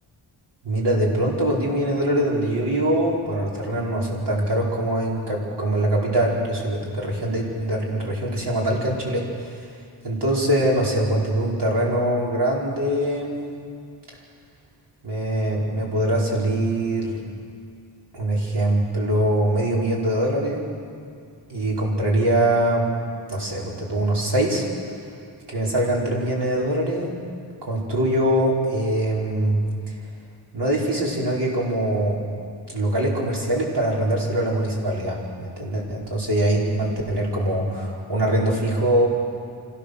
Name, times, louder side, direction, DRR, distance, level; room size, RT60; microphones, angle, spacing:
voice 1, 0.6-9.6 10.0-13.3 15.0-17.2 18.1-20.6 21.5-22.9 23.3-24.7 25.5-27.1 27.6-29.6 30.5-32.2 32.7-39.1, right 1 dB, 65° right, -3 dB, 4.8 m, -23 dB
26.0 x 15.5 x 6.7 m, 2.3 s
wide cardioid pair, 75°, 44 cm